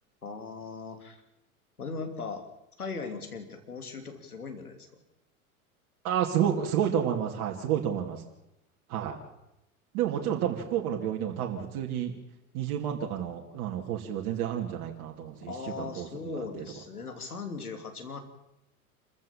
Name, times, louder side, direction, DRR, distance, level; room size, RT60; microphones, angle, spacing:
voice 1, 0.2-1.2 1.8-2.5 2.8-5.0 15.5-18.2, left 4 dB, 85° left, 6 dB, 3.1 m, -39 dB
voice 2, 6.0-8.2 8.9-9.2 9.9-12.1 12.5-16.6, right 9 dB, 50° right, 1 dB, 2.7 m, -30 dB
27.0 x 15.0 x 7.2 m, 0.88 s
figure-of-eight pair, 85°, 43 cm